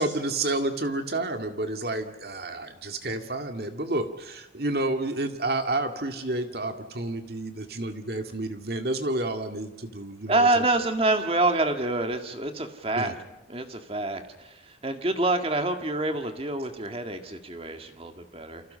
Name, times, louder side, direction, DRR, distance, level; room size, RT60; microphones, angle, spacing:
voice 1, 0.0-10.6 13.0-13.1, right 2 dB, 55° right, 6 dB, 2.2 m, -30 dB
voice 2, 10.3-13.1 13.5-18.6, right 2 dB, 30° right, 6 dB, 1.9 m, -27 dB
28.5 x 26.0 x 5.7 m, 1.0 s
head